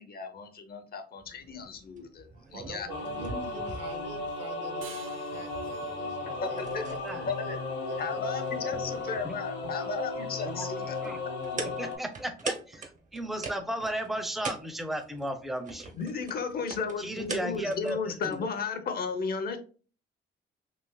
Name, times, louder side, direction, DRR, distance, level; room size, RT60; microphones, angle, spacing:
voice 1, 0.0-3.6 6.4-6.8 7.3-7.6 8.0-11.1 16.0-19.6, left 5 dB, 50° left, 0.6 m, -35 dB
sound 1, 1.2-18.5, right 3 dB, 40° right, 0.7 m, -44 dB
voice 2, 2.5-9.3, right 4 dB, 70° right, 0.9 m, -46 dB
sound 2, 2.9-12.0, left 3 dB, 65° left, 0.9 m, -35 dB
sound 3, 4.8-8.0, right 8 dB, 90° right, 0.5 m, -52 dB
voice 3, 11.8-16.0 17.0-18.5, right 1 dB, ahead, 0.5 m, -35 dB
3.2 x 2.7 x 2.2 m
cardioid pair, 90°, 20 cm